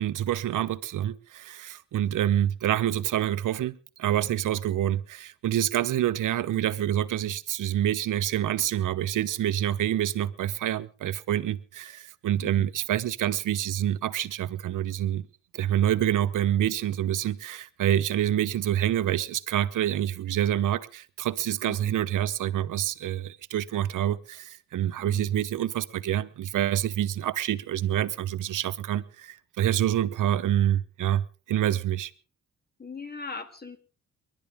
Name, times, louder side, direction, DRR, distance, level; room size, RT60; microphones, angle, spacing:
voice 1, 0.0-15.3 15.5-32.1, right 11 dB, 70° right, 0.9 m, -27 dB
voice 2, 21.6-21.9 25.0-25.4 32.8-33.8, left 4 dB, 30° left, 2.3 m, -40 dB
29.5 x 11.5 x 3.6 m
cardioid pair, 110°, 32 cm